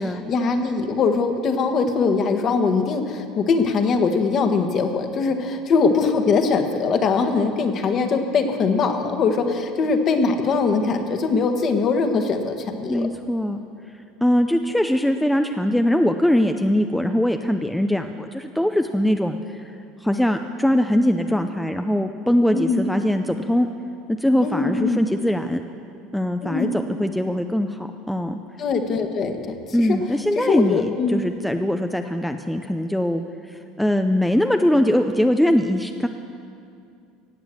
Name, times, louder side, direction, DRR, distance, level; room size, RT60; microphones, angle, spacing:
voice 1, 0.0-13.1 22.5-22.9 24.4-25.0 26.4-26.7 28.6-30.0 30.3-31.2, left 4 dB, 40° left, 6 dB, 1.4 m, -22 dB
voice 2, 12.9-13.6 14.2-23.7 24.1-25.6 26.1-28.4 29.7-33.2 33.5-36.1, left 1 dB, 5° left, 6 dB, 0.5 m, -21 dB
16.5 x 8.7 x 7.6 m, 2.5 s
supercardioid pair, 125°, 0 cm